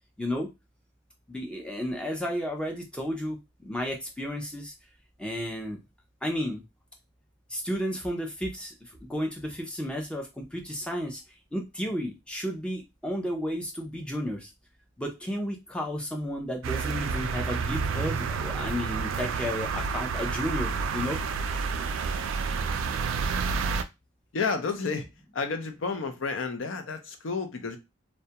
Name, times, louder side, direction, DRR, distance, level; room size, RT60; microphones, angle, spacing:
voice 1, 0.2-0.5 1.3-4.7 5.2-5.8 6.2-6.6 7.5-11.2 11.5-14.5 15.0-21.2, equal, 5° left, 0.5 m, -32 dB
sound 1, 16.6-23.8, right 5 dB, 80° right, 0.3 m, -29 dB
voice 2, 24.3-25.1 25.3-27.8, left 4 dB, 75° left, 0.5 m, -31 dB
2.3 x 2.1 x 2.8 m
head